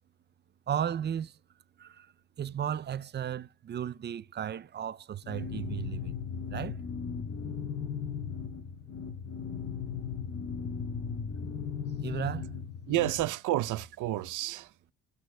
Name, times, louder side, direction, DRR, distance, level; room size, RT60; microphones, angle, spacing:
voice 1, 0.7-1.4 1.8-2.1 2.4-6.1 6.5-6.8 12.0-12.5, right 9 dB, 35° right, 0.4 m, -34 dB
sound 1, 5.2-13.2, left 6 dB, 55° left, 0.9 m, -37 dB
voice 2, 12.9-14.9, right 15 dB, 80° right, 0.6 m, -30 dB
17.5 x 6.2 x 2.2 m
cardioid pair, 90°, 30 cm